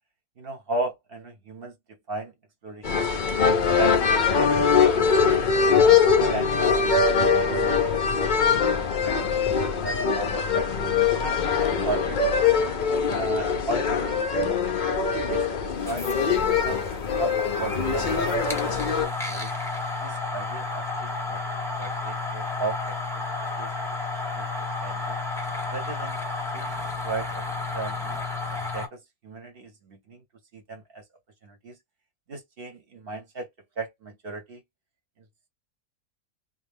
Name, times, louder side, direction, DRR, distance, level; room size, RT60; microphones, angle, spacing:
voice 1, 0.4-1.8 2.1-2.3 2.6-3.1 3.6-3.9 4.3-6.0 6.3-6.6 7.5-7.9 8.2-10.7 11.2-12.2 13.2-16.8 17.2-19.5 20.0-21.4 21.8-23.2 23.6-23.7 24.0-24.1 24.3-25.2 25.7-26.2 26.5-28.2 28.5-30.2 30.5-31.0 31.4-31.8 32.3-33.5 33.8-34.6, right 3 dB, 50° right, 0.9 m, -36 dB
sound 1, 2.8-19.1, left 5 dB, 65° left, 0.4 m, -22 dB
sound 2, 15.7-28.9, left 3 dB, ahead, 0.7 m, -32 dB
3.2 x 2.3 x 3.4 m
omnidirectional pair, 1.5 m